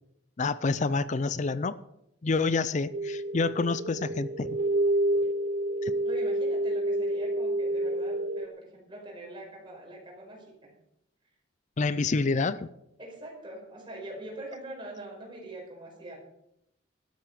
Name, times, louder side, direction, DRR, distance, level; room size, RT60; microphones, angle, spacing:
voice 1, 0.4-1.8 2.2-4.6 5.8-5.9 11.8-12.7, left 4 dB, 40° left, 16 dB, 0.5 m, -28 dB
sound 1, 2.9-8.5, right 1 dB, 45° right, 0.5 m, -28 dB
voice 2, 6.0-10.7 13.0-16.2, right 1 dB, 25° right, -2 dB, 5.3 m, -43 dB
12.5 x 9.2 x 6.7 m, 0.80 s
head